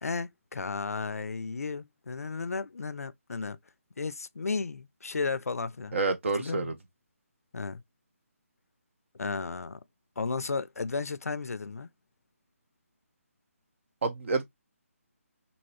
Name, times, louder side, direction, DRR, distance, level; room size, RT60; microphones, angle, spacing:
voice 1, 0.0-3.6 4.0-6.0 6.4-6.7 7.5-7.8 9.1-9.8 10.2-11.9, left 4 dB, 80° left, 0.4 m, -34 dB
voice 2, 5.9-6.7 14.0-14.4, right 3 dB, 55° right, 0.9 m, -28 dB
2.8 x 2.6 x 3.0 m
figure-of-eight pair, 150°, 8 cm